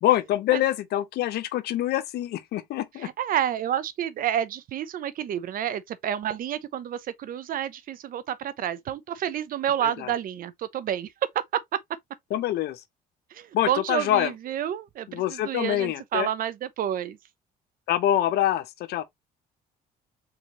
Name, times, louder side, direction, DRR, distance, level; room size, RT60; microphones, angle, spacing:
voice 1, 0.0-3.1 9.8-10.1 12.3-12.8 13.5-14.3 15.1-16.3 17.9-19.0, left 12 dB, 75° left, 0.8 m, -25 dB
voice 2, 3.0-11.1 11.5-11.6 13.3-17.2, right 10 dB, 55° right, 0.6 m, -29 dB
4.2 x 3.8 x 3.0 m
cardioid pair, 110°, 17 cm